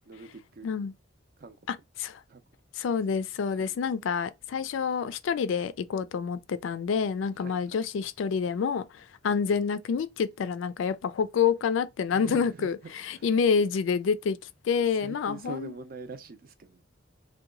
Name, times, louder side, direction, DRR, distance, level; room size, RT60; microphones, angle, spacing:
voice 1, 0.1-0.7 1.4-1.6 2.3-2.4 3.1-3.2 3.5-3.8 7.3-7.8 12.1-12.7 13.1-13.3 14.9-16.8, right 3 dB, 50° right, 0.5 m, -43 dB
voice 2, 1.7-2.2 2.8-14.4 14.6-15.7, left 6 dB, 70° left, 0.3 m, -28 dB
2.8 x 2.2 x 3.7 m
head